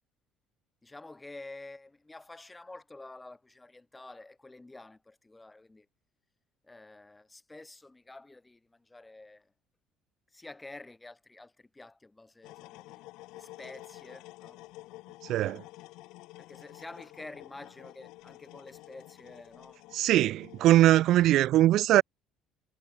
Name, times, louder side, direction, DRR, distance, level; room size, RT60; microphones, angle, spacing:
voice 1, 0.8-5.9 6.6-9.5 10.3-13.1 13.3-14.6 16.4-19.9, left 2 dB, 10° left, 2.6 m, -49 dB
sound 1, 12.4-21.0, left 19 dB, 70° left, 1.7 m, -50 dB
voice 2, 15.2-15.6 19.9-22.0, right 14 dB, 50° right, 0.3 m, -22 dB
cardioid pair, 170°, 0 cm